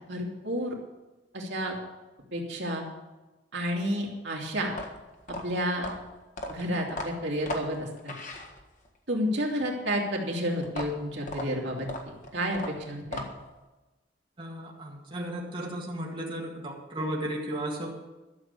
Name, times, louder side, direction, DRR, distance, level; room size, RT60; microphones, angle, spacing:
voice 1, 0.1-0.7 1.3-1.7 2.3-2.9 3.5-4.8 5.4-5.9 6.5-8.1 9.1-13.2, equal, 70° right, -1 dB, 2.6 m, -30 dB
sound 1, 4.6-9.0 10.6-13.6, left 1 dB, 45° left, 1.6 m, -38 dB
voice 2, 14.4-17.9, right 1 dB, 30° right, -4 dB, 2.0 m, -34 dB
12.5 x 7.2 x 8.1 m, 1.1 s
head